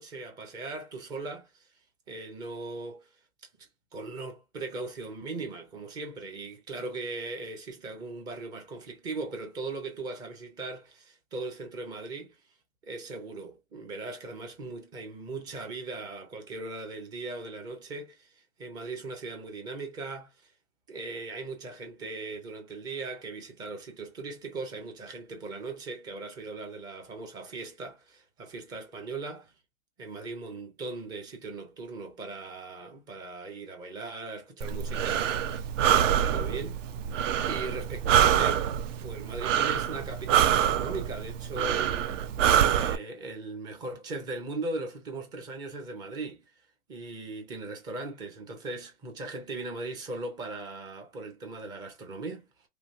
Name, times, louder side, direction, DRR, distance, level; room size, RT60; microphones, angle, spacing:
voice 1, 0.0-1.7 2.1-3.1 3.9-12.4 12.8-20.5 20.9-29.5 30.0-36.8 37.5-38.7 39.0-42.1 42.7-46.4 46.9-52.5, right 3 dB, 10° right, 0.4 m, -39 dB
Breathing, 34.6-43.0, right 9 dB, 65° right, 0.7 m, -26 dB
3.2 x 2.7 x 2.5 m
hypercardioid pair, 140°, 41 cm